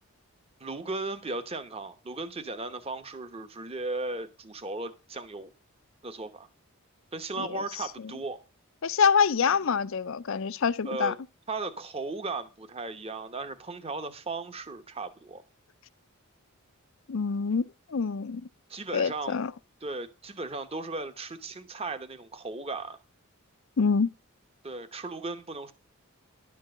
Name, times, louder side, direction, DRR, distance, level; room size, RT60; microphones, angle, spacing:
voice 1, 0.6-5.5 6.0-6.5 7.1-8.4 10.8-11.2 11.5-15.4 18.7-19.4 19.8-23.0 24.6-25.7, right 3 dB, 25° right, 1.0 m, -36 dB
voice 2, 8.8-11.1 17.1-18.4 18.9-19.5 23.8-24.1, left 6 dB, 60° left, 0.5 m, -26 dB
11.5 x 4.6 x 7.7 m
head